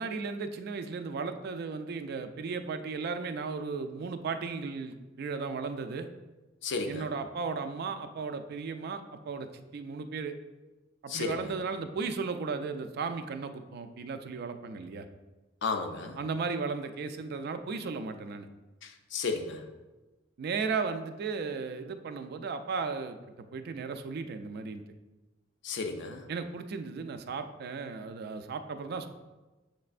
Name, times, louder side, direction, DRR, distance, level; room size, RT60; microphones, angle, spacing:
voice 1, 0.0-6.1 6.9-10.3 11.0-15.1 16.2-18.5 20.4-24.8 26.3-29.1, right 4 dB, 55° right, 9 dB, 0.3 m, -35 dB
voice 2, 6.6-7.1 11.1-11.5 15.6-16.2 18.8-19.7 25.6-26.3, left 4 dB, 65° left, 5 dB, 0.5 m, -34 dB
6.6 x 3.2 x 2.4 m, 1.1 s
head